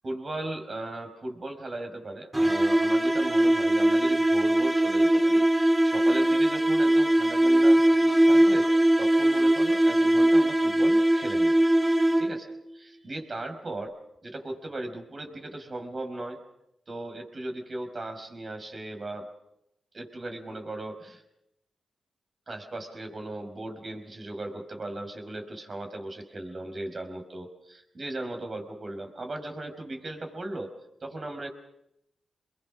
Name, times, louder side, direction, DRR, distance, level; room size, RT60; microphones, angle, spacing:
voice 1, 0.0-8.7 9.0-11.6 12.2-12.5 12.7-16.4 16.9-19.3 19.9-21.2 22.5-31.5, right 2 dB, 50° right, 4 dB, 5.3 m, -37 dB
sound 1, 2.3-12.5, right 1 dB, 20° right, 4.4 m, -21 dB
25.5 x 21.5 x 6.3 m, 0.83 s
supercardioid pair, 50°, 0 cm